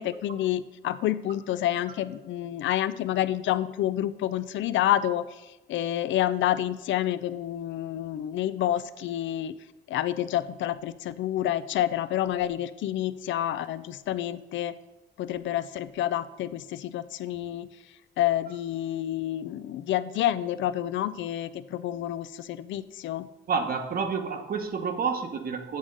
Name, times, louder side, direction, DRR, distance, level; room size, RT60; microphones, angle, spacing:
voice 1, 0.0-5.4 5.7-9.5 9.9-14.7 15.2-17.7 18.2-23.3, left 12 dB, 70° left, 15 dB, 0.4 m, -28 dB
voice 2, 23.5-25.8, right 5 dB, 50° right, 6 dB, 0.9 m, -29 dB
8.6 x 3.7 x 5.2 m, 1.1 s
cardioid pair, 90°, 20 cm